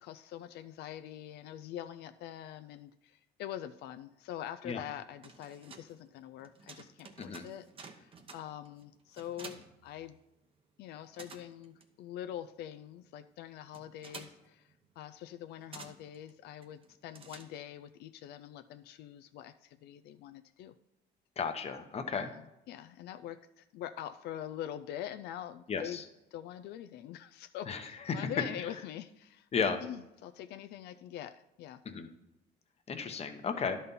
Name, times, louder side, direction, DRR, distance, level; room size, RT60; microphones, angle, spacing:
voice 1, 0.0-10.2 10.8-20.7 22.1-26.0 26.3-29.5 29.8-31.8, left 11 dB, 75° left, 10 dB, 0.4 m, -44 dB
sound 1, 5.0-10.6 10.8-17.9, right 4 dB, 35° right, 0.9 m, -53 dB
voice 2, 21.4-22.3 25.7-26.0 27.7-27.8 28.1-28.3 29.5-29.8 31.8-32.1 32.9-33.8, left 5 dB, 35° left, 7 dB, 0.9 m, -34 dB
11.0 x 4.2 x 5.4 m, 0.88 s
cardioid pair, 110°, 17 cm